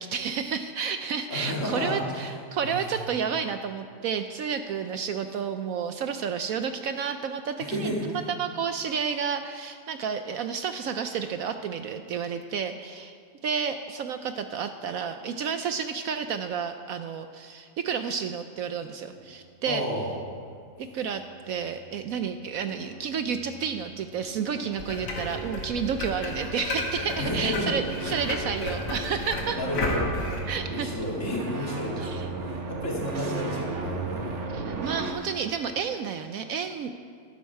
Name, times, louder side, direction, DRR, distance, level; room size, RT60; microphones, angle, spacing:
voice 1, 0.0-13.2 13.4-19.9 20.8-29.6 30.5-30.9 32.0-32.3 34.5-36.9, right 6 dB, 70° right, 8 dB, 0.8 m, -31 dB
voice 2, 1.3-2.0 2.6-2.9 7.6-8.1 19.7-20.1 27.2-27.7 29.5-30.1 30.6-34.4, left 1 dB, 45° left, -3 dB, 2.6 m, -31 dB
sound 1, 20.7-35.1, right 3 dB, 45° right, 1.3 m, -37 dB
sound 2, 24.8-30.4, left 2 dB, 65° left, 2.4 m, -33 dB
12.5 x 12.0 x 4.7 m, 2.1 s
omnidirectional pair, 1.9 m